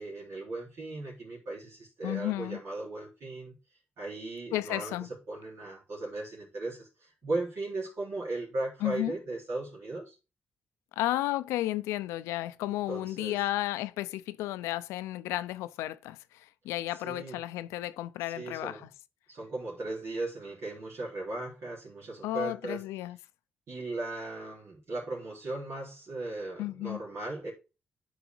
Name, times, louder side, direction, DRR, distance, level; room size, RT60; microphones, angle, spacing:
voice 1, 0.0-3.6 4.0-10.1 12.9-13.4 17.0-17.4 18.2-18.9 19.3-22.8 23.7-27.5, right 2 dB, 70° right, 3.6 m, -37 dB
voice 2, 2.0-2.6 4.5-5.1 8.8-9.1 10.9-18.9 22.2-23.2 26.6-27.0, left 15 dB, 90° left, 0.5 m, -33 dB
8.0 x 4.8 x 4.5 m
supercardioid pair, 55°, 5 cm